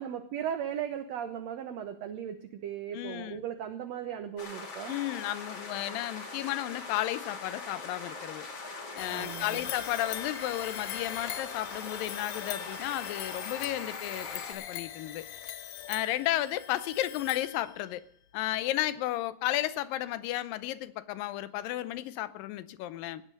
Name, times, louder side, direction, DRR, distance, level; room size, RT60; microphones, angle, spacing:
voice 1, 0.0-5.0 9.1-9.7, right 9 dB, 70° right, 1.7 m, -37 dB
voice 2, 2.9-3.4 4.9-8.5 8.9-15.3 15.9-18.0 18.3-23.2, left 14 dB, 90° left, 2.5 m, -33 dB
sound 1, 4.4-14.5, left 3 dB, 45° left, 3.6 m, -42 dB
sound 2, 9.0-18.0, left 11 dB, 70° left, 1.7 m, -41 dB
17.0 x 9.8 x 6.5 m
omnidirectional pair, 3.9 m